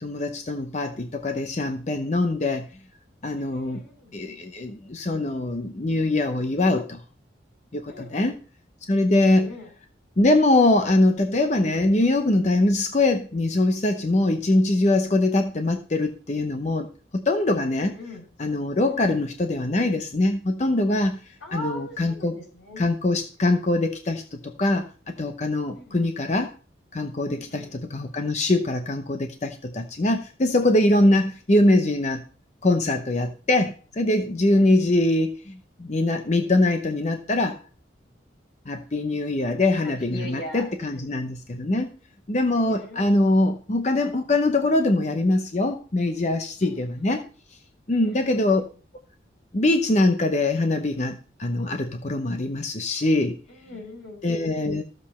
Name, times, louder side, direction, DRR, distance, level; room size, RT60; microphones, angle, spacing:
voice 1, 0.0-2.7 3.2-3.8 4.1-7.0 7.7-8.4 8.9-9.5 10.2-18.0 18.4-22.4 22.8-26.5 26.9-32.2 32.6-37.6 38.7-42.0 42.3-47.3 47.9-48.6 49.5-53.4 54.2-54.8, left 2 dB, 40° left, 6 dB, 0.7 m, -23 dB
voice 2, 3.4-4.1 7.8-8.4 9.2-9.7 17.7-18.3 18.8-19.1 21.4-22.8 25.7-26.0 27.3-27.8 31.0-31.3 34.5-34.9 40.0-41.1 42.6-43.1 46.6-47.2 47.9-48.6 53.5-54.5, left 1 dB, 85° left, 0 dB, 5.4 m, -41 dB
14.0 x 7.4 x 4.3 m, 0.37 s
head